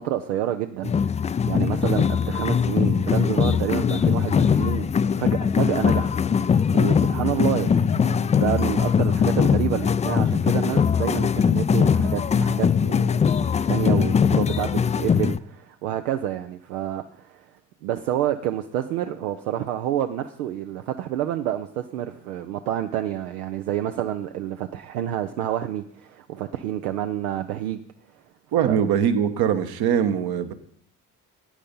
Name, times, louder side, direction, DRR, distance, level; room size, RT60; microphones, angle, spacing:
voice 1, 0.0-13.2 13.7-17.5 17.8-27.8 28.6-28.8, right 11 dB, 85° right, 7 dB, 0.6 m, -28 dB
sound 1, 0.8-15.4, left 7 dB, 20° left, 0.3 m, -21 dB
voice 2, 28.5-30.5, right 8 dB, 60° right, 9 dB, 1.3 m, -22 dB
11.5 x 8.8 x 5.4 m, 0.67 s
hypercardioid pair, 55°, 42 cm